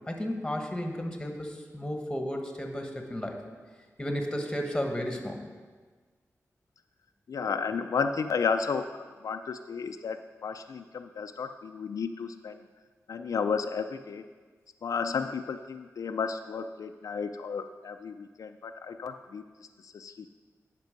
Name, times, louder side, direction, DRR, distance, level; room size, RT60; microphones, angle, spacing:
voice 1, 0.1-3.4 4.0-5.4, equal, 10° left, 3 dB, 1.3 m, -33 dB
voice 2, 7.3-12.6 13.1-14.2 14.8-19.4 19.8-20.3, left 5 dB, 80° left, 7 dB, 0.4 m, -33 dB
10.5 x 5.3 x 5.2 m, 1.5 s
wide cardioid pair, 80°, 6 cm